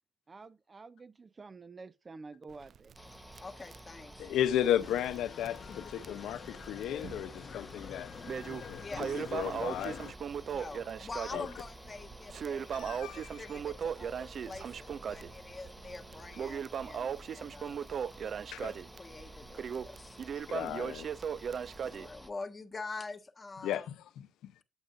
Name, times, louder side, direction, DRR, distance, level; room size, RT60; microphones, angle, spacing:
voice 1, 0.3-2.9, right 4 dB, 30° right, 0.8 m, -49 dB
Crackle, 2.5-5.2 5.5-5.6 6.0-6.1 6.8-7.4 7.8-22.1, right 7 dB, 55° right, 0.3 m, -38 dB
sound 1, 2.9-22.3, equal, 5° right, 1.1 m, -52 dB
voice 2, 3.4-4.3 8.8-9.2 10.5-17.9 18.6-18.7 19.0-20.2 21.8-23.9, left 3 dB, 30° left, 1.5 m, -45 dB
voice 3, 4.2-8.1 8.5-10.0 11.3-11.5 12.7-13.4 18.5-18.7 20.5-21.1 23.6-24.5, left 11 dB, 85° left, 0.7 m, -34 dB
sound 2, 4.8-10.1, left 7 dB, 55° left, 0.8 m, -47 dB
8.8 x 8.2 x 2.6 m
cardioid pair, 90°, 0 cm